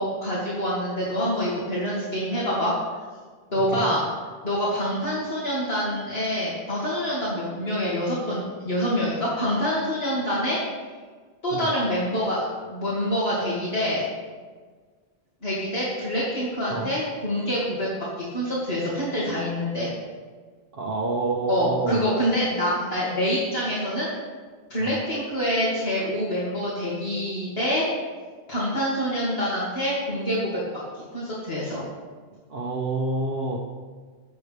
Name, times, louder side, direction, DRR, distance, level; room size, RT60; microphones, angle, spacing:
voice 1, 0.0-2.8 3.5-4.0 4.4-10.6 11.4-14.0 15.4-19.9 21.5-24.1 24.7-27.9 28.5-30.8 31.1-31.8, equal, 65° left, -8 dB, 2.8 m, -26 dB
voice 2, 20.7-22.1 24.8-25.0 32.5-33.6, right 3 dB, 55° right, -3 dB, 1.5 m, -28 dB
22.5 x 8.2 x 3.5 m, 1.5 s
omnidirectional pair, 1.1 m